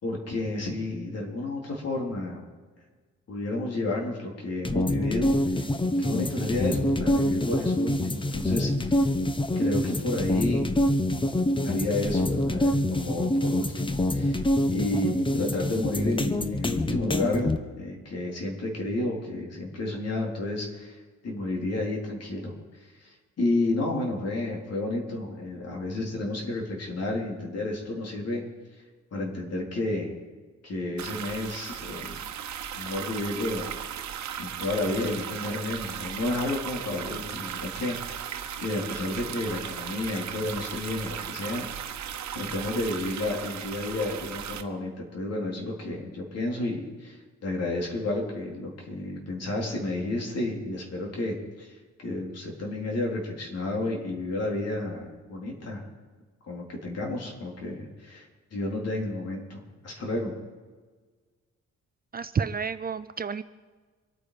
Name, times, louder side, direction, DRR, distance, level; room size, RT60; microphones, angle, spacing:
voice 1, 0.0-2.4 3.3-5.4 6.0-9.0 9.6-10.8 11.6-14.4 14.7-21.0 21.2-22.5 23.0-28.4 29.1-30.1 30.6-32.2 32.8-33.7 34.4-38.3 38.6-41.6 42.3-51.8 52.0-55.8 56.5-60.3, left 2 dB, 55° left, -1 dB, 4.0 m, -31 dB
sound 1, 4.7-17.6, left 1 dB, 15° left, 0.9 m, -26 dB
sound 2, 31.0-44.6, right 9 dB, 70° right, 1.1 m, -36 dB
voice 2, 62.1-63.4, right 6 dB, 30° right, 13 dB, 0.5 m, -30 dB
25.5 x 9.3 x 5.2 m, 1.4 s
cardioid pair, 125°, 29 cm